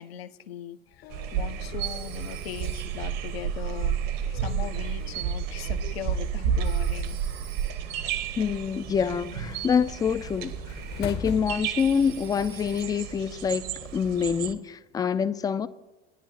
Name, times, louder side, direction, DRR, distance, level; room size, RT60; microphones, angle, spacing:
voice 1, 0.0-4.0 4.3-7.2 11.2-11.4, left 10 dB, 70° left, 0.7 m, -39 dB
sound 1, 0.9-12.9, left 7 dB, 35° left, 0.7 m, -45 dB
sound 2, 1.1-14.5, right 8 dB, 50° right, 1.1 m, -31 dB
Telephone, 1.8-3.2 6.6-8.0 11.8-13.2, right 9 dB, 75° right, 1.3 m, -49 dB
voice 2, 8.4-10.5 11.0-13.6 13.9-15.7, left 6 dB, 10° left, 0.4 m, -26 dB
18.5 x 10.5 x 2.8 m
figure-of-eight pair, 75°, 32 cm